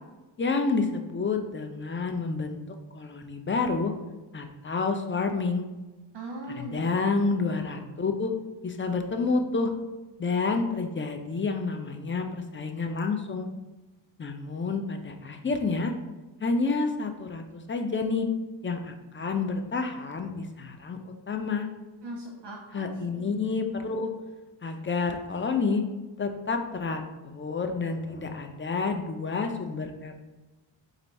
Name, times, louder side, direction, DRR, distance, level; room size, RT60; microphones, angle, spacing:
voice 1, 0.4-2.6 2.9-3.9 4.3-5.7 6.6-8.3 8.6-9.7 10.2-13.5 14.2-15.9 16.4-18.3 18.6-21.0 21.3-21.7 22.7-24.1 24.6-25.8 26.2-30.1, left 4 dB, 25° left, 5 dB, 0.5 m, -29 dB
voice 2, 6.1-6.8 7.2-7.7 22.0-23.3, right 1 dB, 60° right, 0 dB, 0.8 m, -40 dB
4.4 x 2.6 x 4.1 m, 1.1 s
cardioid pair, 60°, 48 cm